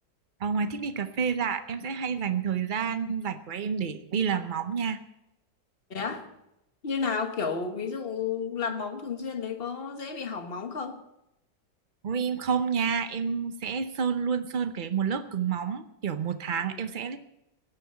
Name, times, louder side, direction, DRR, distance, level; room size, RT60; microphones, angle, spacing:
voice 1, 0.4-5.0 12.0-17.2, right 6 dB, 85° right, 10 dB, 0.4 m, -29 dB
voice 2, 5.9-6.3 6.8-11.0 16.6-16.9, left 5 dB, 35° left, 6 dB, 1.4 m, -32 dB
16.5 x 11.0 x 5.7 m, 0.86 s
omnidirectional pair, 2.0 m